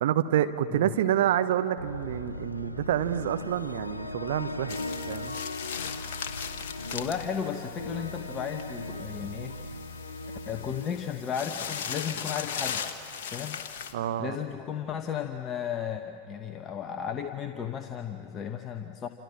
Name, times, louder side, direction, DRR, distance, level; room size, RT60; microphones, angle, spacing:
voice 1, 0.0-4.8 5.1-5.4 13.9-14.4, right 11 dB, 55° right, 9 dB, 1.1 m, -27 dB
sound 1, 1.8-12.0, left 2 dB, 80° left, 1.2 m, -39 dB
sound 2, 4.7-13.9, left 7 dB, 55° left, 1.6 m, -38 dB
voice 2, 6.9-9.6 10.5-12.9 13.3-13.6 14.2-19.1, left 8 dB, 25° left, 6 dB, 1.2 m, -34 dB
28.0 x 27.5 x 7.5 m, 2.6 s
figure-of-eight pair, 90°, 0 cm